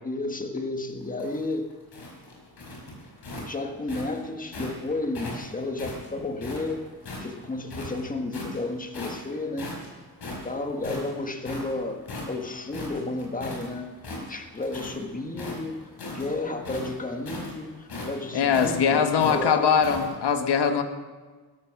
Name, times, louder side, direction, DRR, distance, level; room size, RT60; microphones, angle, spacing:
voice 1, 0.0-1.7 3.4-6.9 7.2-9.7 10.4-13.9 14.3-19.8, left 2 dB, 20° left, 4 dB, 1.5 m, -32 dB
sound 1, 1.0-4.8 5.1-7.3 7.7-8.6 8.9-9.3 9.6-13.7 14.0-15.0 15.3-20.1, left 2 dB, 70° left, 5.4 m, -37 dB
voice 2, 18.3-20.8, left 7 dB, 90° left, 7 dB, 1.3 m, -22 dB
16.5 x 13.0 x 6.0 m, 1.4 s
wide cardioid pair, 120°, 40 cm